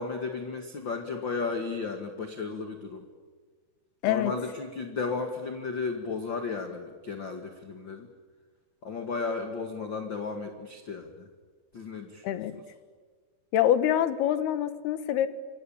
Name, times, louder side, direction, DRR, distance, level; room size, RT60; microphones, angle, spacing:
voice 1, 0.0-3.1 4.0-8.1 8.8-11.3 11.7-12.4, left 4 dB, 50° left, 5 dB, 1.4 m, -34 dB
voice 2, 13.5-15.3, left 11 dB, 70° left, 12 dB, 3.0 m, -25 dB
27.5 x 24.0 x 8.9 m, 1.5 s
omnidirectional pair, 5.2 m